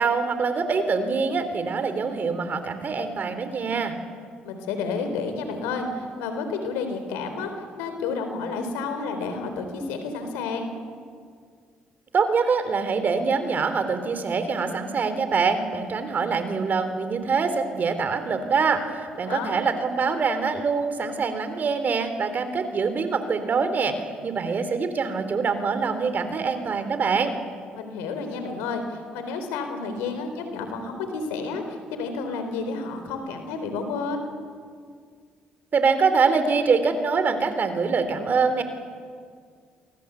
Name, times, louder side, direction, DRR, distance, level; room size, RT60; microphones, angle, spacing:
voice 1, 0.0-3.9 12.1-24.0 24.2-27.3 35.7-38.6, right 5 dB, 50° right, 10 dB, 3.5 m, -24 dB
voice 2, 4.4-10.7 19.2-19.6 27.8-34.2, left 4 dB, 85° left, 7 dB, 4.0 m, -30 dB
29.0 x 23.5 x 8.2 m, 2.1 s
hypercardioid pair, 55°, 4 cm